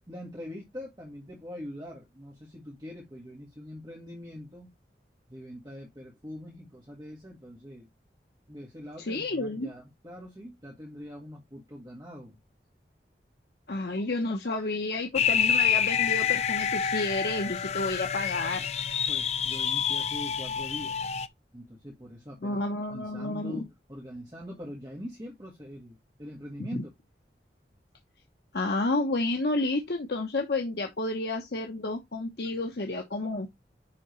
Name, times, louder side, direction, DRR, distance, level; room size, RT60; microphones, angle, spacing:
voice 1, 0.0-4.7 5.3-7.9 8.5-12.4 19.1-21.0 21.5-22.6 22.9-26.9, equal, 20° right, 1.7 m, -43 dB
voice 2, 9.1-9.7 13.7-18.7 22.4-23.7 26.6-26.8 28.5-33.5, left 2 dB, 65° left, 0.9 m, -30 dB
sound 1, 15.1-21.3, left 8 dB, 40° left, 0.4 m, -27 dB
10.0 x 3.8 x 3.1 m
head